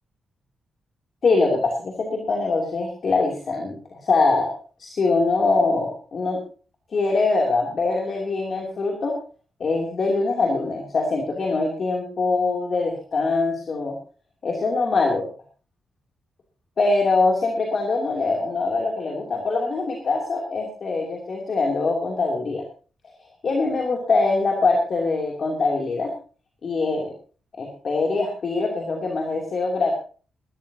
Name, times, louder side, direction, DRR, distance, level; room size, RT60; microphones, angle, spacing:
voice 1, 1.2-4.5 4.8-6.4 6.9-9.2 9.6-13.9 14.4-15.3 16.8-22.6 23.4-26.1 26.6-27.1 27.6-29.9, left 3 dB, 40° left, 0 dB, 2.8 m, -23 dB
20.5 x 13.0 x 2.8 m, 0.38 s
wide cardioid pair, 180°, 0 cm